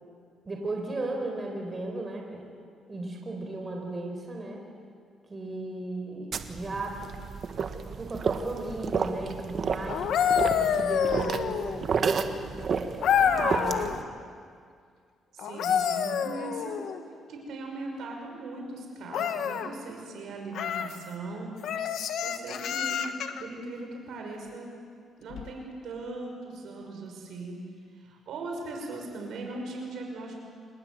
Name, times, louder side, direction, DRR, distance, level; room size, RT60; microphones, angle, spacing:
voice 1, 0.4-2.5 2.9-4.6 5.3-7.2 7.9-10.1 10.4-13.9, right 2 dB, 30° right, 1 dB, 4.3 m, -36 dB
sound 1, 6.3-14.0, right 6 dB, 50° right, 1.5 m, -31 dB
sound 2, 9.9-11.9 13.0-14.0 15.4-17.0 19.1-19.7 20.5-21.0 21.6-23.4 25.3-25.5, left 8 dB, 75° left, 1.4 m, -27 dB
voice 2, 15.3-16.9 17.3-21.5 22.1-23.0 23.4-24.7 25.2-27.6 27.9-30.3, right 3 dB, 75° right, 1 dB, 6.0 m, -39 dB
28.0 x 20.0 x 7.9 m, 2.1 s
cardioid pair, 90°, 0 cm